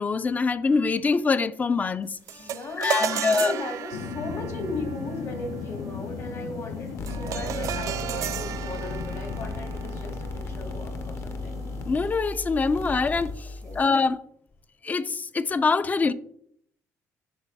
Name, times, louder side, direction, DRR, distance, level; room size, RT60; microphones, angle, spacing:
voice 1, 0.0-2.2 2.8-3.5 11.9-13.5 13.7-14.2 14.8-16.1, left 4 dB, 25° left, 0.4 m, -24 dB
sound 1, 2.3-11.8, right 11 dB, 65° right, 0.3 m, -35 dB
voice 2, 2.4-10.2 10.5-11.6 13.6-13.9, left 2 dB, 60° left, 1.9 m, -37 dB
sound 2, 3.9-12.1, left 5 dB, 85° left, 0.8 m, -37 dB
sound 3, 7.0-13.8, left 2 dB, 45° left, 0.8 m, -36 dB
10.5 x 4.0 x 3.5 m
cardioid pair, 110°, 6 cm